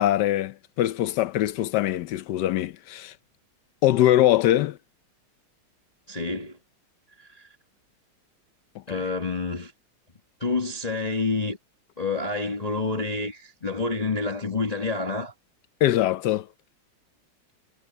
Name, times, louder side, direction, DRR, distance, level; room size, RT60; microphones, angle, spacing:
voice 1, 0.0-3.1 3.8-4.8 8.9-9.0 15.8-16.5, left 13 dB, 70° left, 1.0 m, -22 dB
voice 2, 6.1-6.6 7.2-7.5 8.9-9.7 10.4-11.6 12.0-15.3, left 3 dB, 20° left, 1.4 m, -28 dB
omnidirectional pair, 2.3 m